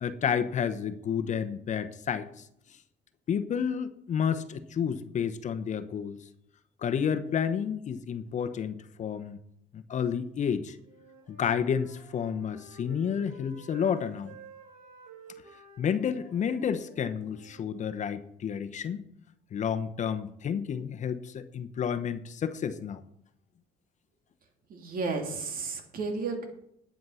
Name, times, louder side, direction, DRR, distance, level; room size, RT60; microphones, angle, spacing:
voice 1, 0.0-2.5 3.3-6.2 6.8-9.4 9.7-10.8 11.3-14.3 15.8-19.0 19.5-23.0, left 7 dB, 45° left, 10 dB, 0.9 m, -30 dB
Wind instrument woodwind instrument, 10.8-17.6, right 5 dB, 80° right, 5.1 m, -52 dB
voice 2, 24.7-26.5, right 4 dB, 60° right, 5 dB, 2.6 m, -33 dB
10.5 x 9.2 x 5.7 m, 0.72 s
cardioid pair, 110°, 17 cm